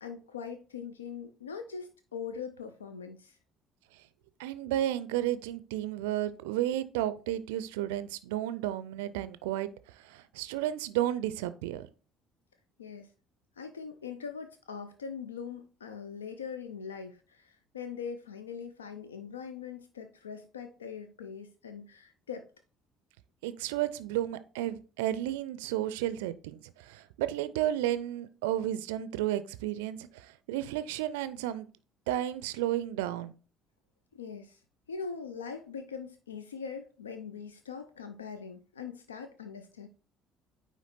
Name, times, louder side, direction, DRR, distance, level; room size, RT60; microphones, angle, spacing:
voice 1, 0.0-3.4 12.8-13.1 13.6-22.5 34.1-34.6 34.9-39.9, left 6 dB, 85° left, 8 dB, 0.4 m, -42 dB
voice 2, 4.4-11.9 23.4-31.7 32.1-33.3, right 13 dB, 75° right, 14 dB, 0.4 m, -32 dB
9.1 x 3.0 x 4.1 m, 0.35 s
figure-of-eight pair, 55°, 0 cm